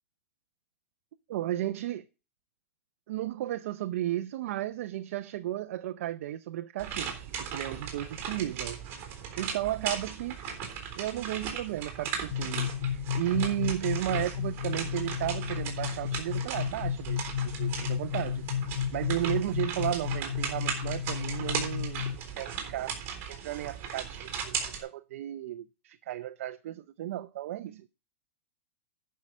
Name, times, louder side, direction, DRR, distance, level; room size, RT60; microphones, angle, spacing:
voice 1, 1.3-2.0 3.1-8.8 9.4-10.4 11.0-18.4 18.9-22.0 22.3-22.9 23.3-27.9, right 13 dB, 60° right, 0.6 m, -34 dB
sound 1, 6.8-24.8, right 7 dB, 30° right, 3.6 m, -37 dB
sound 2, 12.3-22.1, left 9 dB, 85° left, 0.9 m, -33 dB
10.5 x 5.6 x 6.0 m
supercardioid pair, 155°, 8 cm